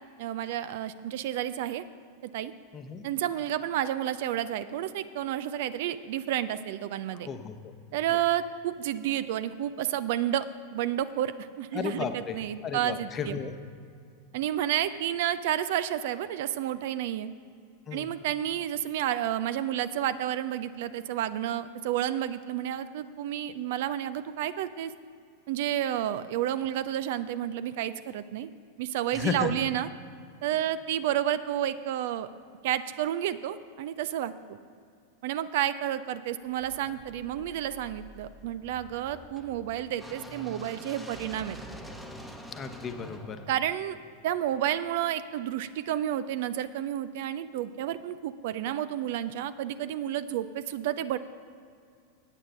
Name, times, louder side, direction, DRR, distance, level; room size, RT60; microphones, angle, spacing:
voice 1, 0.2-1.8 2.2-2.5 3.0-7.3 7.9-13.4 14.3-17.3 17.9-24.9 25.5-28.5 28.8-29.9 30.4-32.3 32.6-34.6 35.2-41.6 43.5-44.0 44.2-51.2, right 11 dB, 50° right, 14 dB, 0.4 m, -30 dB
voice 2, 2.7-3.1 7.3-7.5 11.7-12.3 12.6-13.5 17.9-18.1 29.1-29.5 42.5-43.4, left 6 dB, 25° left, 7 dB, 0.8 m, -33 dB
sound 1, 36.6-44.6, equal, ahead, 1.0 m, -46 dB
9.0 x 8.7 x 5.7 m, 2.3 s
figure-of-eight pair, 90°, 0 cm